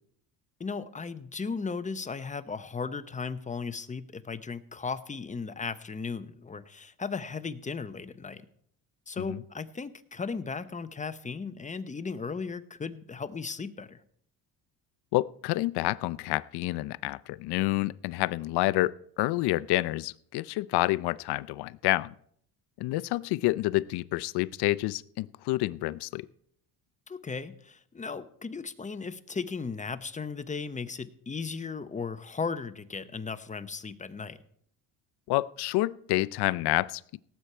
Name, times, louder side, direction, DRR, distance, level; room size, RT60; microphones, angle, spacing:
voice 1, 0.6-8.5 9.1-14.0 27.1-34.4, left 5 dB, 15° left, 11 dB, 0.8 m, -36 dB
voice 2, 15.1-22.1 22.8-26.3 35.3-37.2, left 18 dB, 65° left, 19 dB, 0.6 m, -28 dB
18.0 x 8.2 x 4.4 m, 0.66 s
cardioid pair, 105°, 42 cm